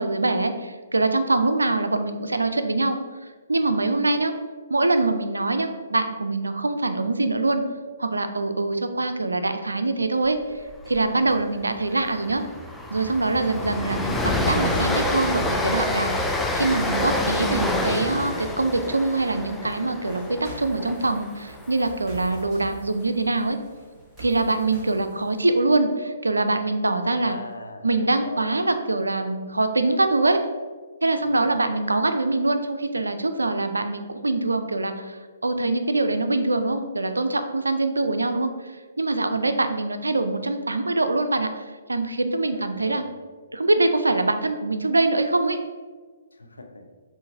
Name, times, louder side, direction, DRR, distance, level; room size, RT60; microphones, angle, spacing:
voice 1, 0.0-3.0 3.5-4.3 4.7-7.6 8.0-10.4 10.9-12.4 12.9-23.6 24.2-27.4 27.8-30.4 31.0-38.5 39.0-41.6 41.9-43.0 43.5-45.6, right 2 dB, 80° right, 8 dB, 0.4 m, -24 dB
Train, 10.7-11.0 11.3-11.4 11.8-21.9, left 1 dB, 5° left, 0.3 m, -27 dB
sound 1, 20.0-25.4, right 1 dB, 15° right, 1.2 m, -45 dB
voice 2, 27.2-27.9 28.2-28.6 31.2-31.6 42.5-43.1 46.3-46.9, left 2 dB, 85° left, 4 dB, 0.5 m, -39 dB
7.4 x 2.5 x 2.7 m, 1.5 s
figure-of-eight pair, 125°, 0 cm